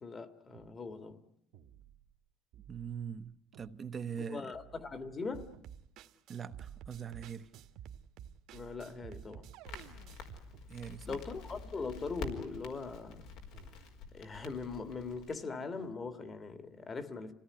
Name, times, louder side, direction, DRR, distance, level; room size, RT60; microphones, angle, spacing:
voice 1, 0.0-1.2 4.3-5.5 8.5-9.5 11.0-13.2 14.1-17.3, left 4 dB, 30° left, 2.0 m, -41 dB
sound 1, 0.5-0.7 1.5-2.2 2.5-3.7 4.5-5.7 6.5-7.8 8.5-10.7 11.5-11.6 12.5-12.8 13.5-14.2 14.5-15.2 15.5-16.2, right 11 dB, 85° right, 1.9 m, -58 dB
voice 2, 2.7-4.5 6.3-7.5 10.7-11.2, right 7 dB, 30° right, 1.0 m, -42 dB
sound 2, 5.3-10.4, right 9 dB, 65° right, 1.6 m, -51 dB
Crackle, 9.7-15.4, left 4 dB, 75° left, 4.6 m, -48 dB
27.0 x 17.5 x 9.6 m
cardioid pair, 130°, 0 cm